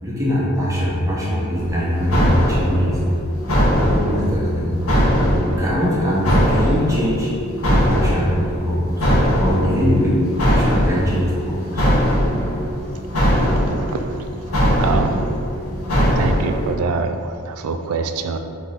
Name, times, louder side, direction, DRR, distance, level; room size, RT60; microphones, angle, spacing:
voice 1, 0.0-3.0 3.6-4.7 5.1-7.3 7.7-9.1 9.4-11.9, equal, 15° right, -6 dB, 0.9 m, -22 dB
sound 1, 1.5-16.7, equal, 70° left, 1.0 m, -20 dB
voice 2, 14.6-15.2 16.2-18.4, right 4 dB, 75° right, 7 dB, 0.3 m, -24 dB
3.7 x 2.9 x 4.3 m, 2.4 s
head